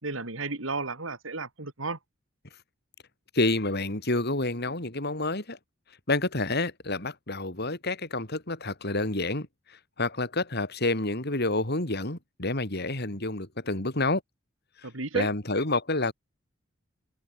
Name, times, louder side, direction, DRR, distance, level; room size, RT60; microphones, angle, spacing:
voice 1, 0.0-2.0 14.8-15.3, right 3 dB, 75° right, 3.1 m, -32 dB
voice 2, 3.3-5.6 6.1-14.2 15.1-16.1, left 2 dB, 55° left, 4.3 m, -29 dB
open air
head